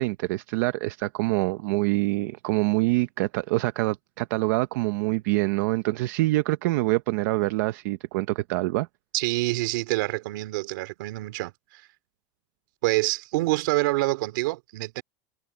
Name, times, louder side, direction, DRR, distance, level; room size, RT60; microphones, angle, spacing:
voice 1, 0.0-8.9, right 20 dB, 65° right, 0.8 m, -25 dB
voice 2, 9.1-11.8 12.8-15.0, right 20 dB, 80° right, 2.6 m, -26 dB
cardioid pair, 180°, 10 cm